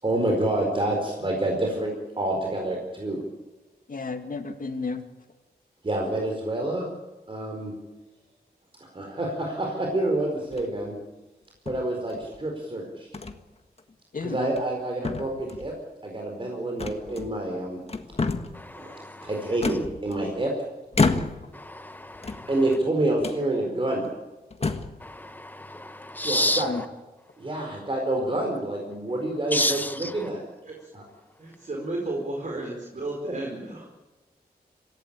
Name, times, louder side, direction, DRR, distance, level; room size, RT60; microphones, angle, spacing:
voice 1, 0.0-3.2 5.8-6.9 7.3-7.7 8.9-11.0 11.6-13.1 14.2-15.7 16.0-17.8 18.8-20.5 22.5-24.0 26.2-26.7 27.4-30.4 30.9-31.0, right 1 dB, 30° right, 4.6 m, -28 dB
voice 2, 3.9-5.0 14.1-14.4 26.6-26.8, left 4 dB, 55° left, 2.4 m, -32 dB
sound 1, 10.4-10.9 11.7-12.4 13.1-13.4 13.8-13.9 14.4-14.8 15.0-15.8 16.8-17.5 17.9-18.6 19.6-20.4 20.9-21.6 22.1-22.8 23.2-23.4 24.0-24.1 24.5-25.0, left 3 dB, 40° left, 1.7 m, -29 dB
voice 3, 18.5-19.3 21.5-22.6 25.0-26.7 29.5-30.3, left 1 dB, 10° left, 1.5 m, -30 dB
voice 4, 31.4-33.9, right 2 dB, 50° right, 4.7 m, -33 dB
27.0 x 16.0 x 8.9 m
wide cardioid pair, 125°, 17 cm